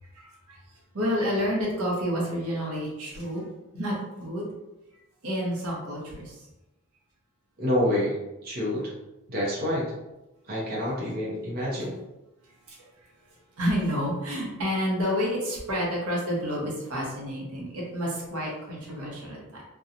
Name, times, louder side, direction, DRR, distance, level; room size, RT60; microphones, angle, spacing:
voice 1, 0.9-3.4 3.7-4.5 5.2-6.3 13.6-19.6, equal, 85° right, -3 dB, 0.8 m, -29 dB
voice 2, 7.6-8.2 8.4-8.9 9.3-9.9 10.5-12.0, left 1 dB, 45° right, -6 dB, 0.7 m, -27 dB
2.8 x 2.2 x 2.5 m, 0.98 s
head